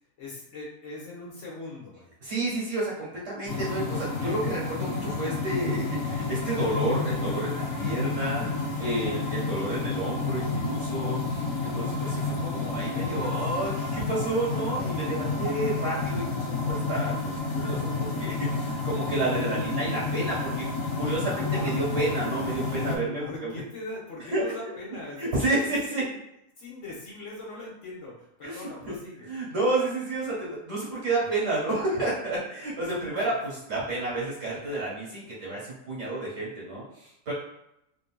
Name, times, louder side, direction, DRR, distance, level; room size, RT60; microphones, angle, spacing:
voice 1, 0.2-2.1 21.3-21.7 22.4-26.1 26.6-29.3 32.9-33.6, left 2 dB, 65° left, -5 dB, 1.3 m, -41 dB
voice 2, 2.2-8.4 8.8-17.1 17.6-20.6 20.9-23.5 24.3-24.4 25.2-26.0 28.4-28.9 29.2-37.3, right 2 dB, 70° right, -6 dB, 1.8 m, -30 dB
sound 1, 3.5-23.0, left 4 dB, 85° left, 1.1 m, -30 dB
3.6 x 2.6 x 2.2 m, 0.81 s
omnidirectional pair, 1.4 m